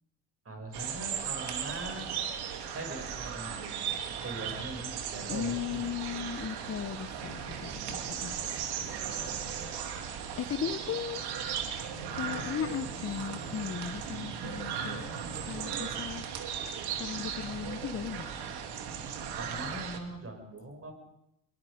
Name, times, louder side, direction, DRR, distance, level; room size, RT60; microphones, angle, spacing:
voice 1, 0.4-2.1 2.3-6.2 9.2-9.3 19.4-20.9, right 1 dB, 30° right, 5 dB, 6.8 m, -42 dB
sound 1, 0.7-20.0, right 7 dB, 60° right, 2.8 m, -37 dB
voice 2, 5.3-8.7 10.4-11.2 12.1-15.1 15.5-16.2 17.0-18.3, left 8 dB, 30° left, 12 dB, 1.0 m, -37 dB
23.5 x 22.0 x 5.2 m, 0.82 s
hypercardioid pair, 60°, 45 cm